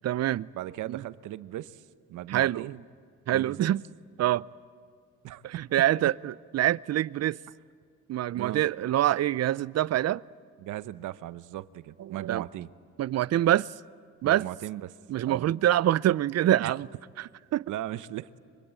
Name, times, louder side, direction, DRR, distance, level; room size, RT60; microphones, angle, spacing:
voice 1, 0.0-0.5 0.9-1.0 2.3-2.7 3.3-3.8 4.2-4.4 5.4-7.4 8.1-10.2 12.0-12.4 13.0-13.7 14.2-14.5 15.1-16.9 17.2-17.7, right 13 dB, 55° right, 0.6 m, -25 dB
voice 2, 0.5-1.8 2.1-2.8 3.3-3.7 5.2-5.6 8.4-8.6 10.6-12.7 14.2-14.9 15.3-15.6 16.6-16.7 17.7-18.3, right 14 dB, 85° right, 0.9 m, -37 dB
25.5 x 24.0 x 8.9 m
cardioid pair, 90°, 30 cm